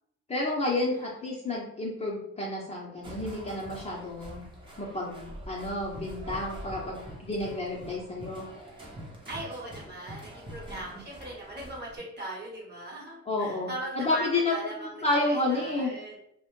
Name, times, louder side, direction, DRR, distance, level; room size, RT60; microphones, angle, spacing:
voice 1, 0.3-4.4 4.8-8.5 10.7-11.0 13.3-13.7 13.9-15.9, left 2 dB, 20° left, -4 dB, 0.6 m, -30 dB
sound 1, 3.0-12.0, right 1 dB, 15° right, 0.6 m, -44 dB
voice 2, 9.3-16.2, right 1 dB, 35° right, -3 dB, 1.0 m, -39 dB
2.1 x 2.1 x 2.9 m, 0.74 s
cardioid pair, 90°, 30 cm